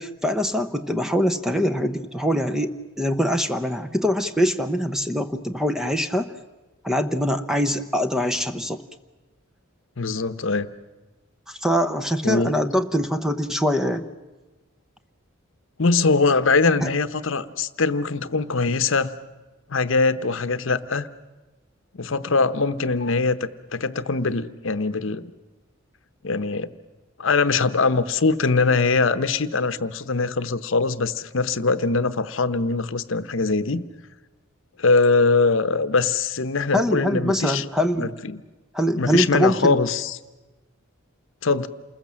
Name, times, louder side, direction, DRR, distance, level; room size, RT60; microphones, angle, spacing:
voice 1, 0.0-6.3 6.8-8.8 11.5-14.1 16.8-16.9 36.7-38.1 38.7-39.8, equal, 5° right, 8 dB, 0.8 m, -23 dB
voice 2, 10.0-10.7 12.2-12.6 15.8-19.1 19.7-21.1 21.9-25.3 26.2-26.7 27.2-33.9 34.8-37.6 38.0-38.4 38.9-40.2 41.4-41.7, left 4 dB, 65° left, 12 dB, 0.9 m, -22 dB
28.0 x 21.0 x 7.5 m, 1.2 s
head